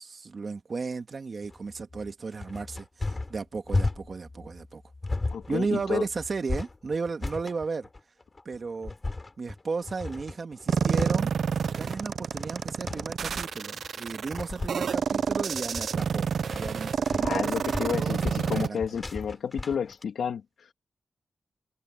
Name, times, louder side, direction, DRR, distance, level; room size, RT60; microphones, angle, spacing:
voice 1, 0.0-4.8 5.5-7.9 8.5-8.9 9.4-11.3 11.8-16.3 16.5-19.0, right 4 dB, 45° right, 2.0 m, -34 dB
sound 1, 1.4-20.0, left 2 dB, 25° left, 4.2 m, -35 dB
voice 2, 5.3-6.1 17.2-20.7, left 7 dB, 90° left, 2.6 m, -31 dB
sound 2, 10.7-18.7, right 6 dB, 70° right, 0.6 m, -28 dB
wide cardioid pair, 110°, 0 cm